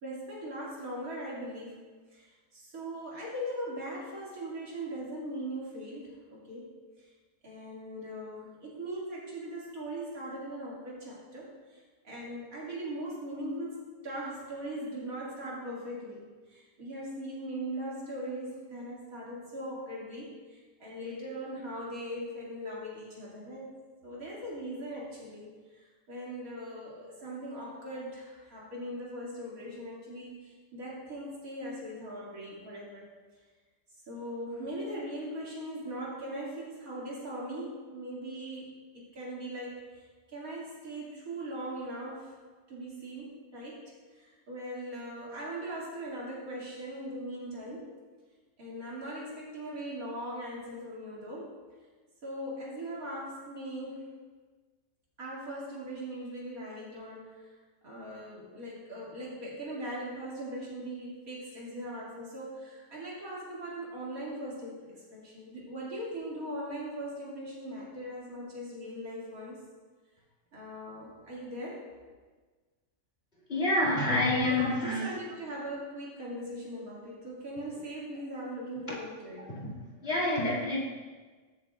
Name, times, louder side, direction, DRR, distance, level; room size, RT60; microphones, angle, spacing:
voice 1, 0.0-1.8 2.1-6.7 7.4-23.7 24.0-33.1 34.1-39.8 40.3-42.4 42.7-43.8 44.2-47.9 48.6-51.5 52.2-54.1 55.2-57.5 57.8-69.6 70.5-71.8 74.1-79.5, right 1 dB, 65° right, -6 dB, 2.7 m, -40 dB
voice 2, 73.5-75.1 79.6-79.7 80.0-80.8, left 1 dB, 40° left, -5 dB, 2.6 m, -27 dB
13.0 x 7.7 x 2.4 m, 1.4 s
omnidirectional pair, 1.6 m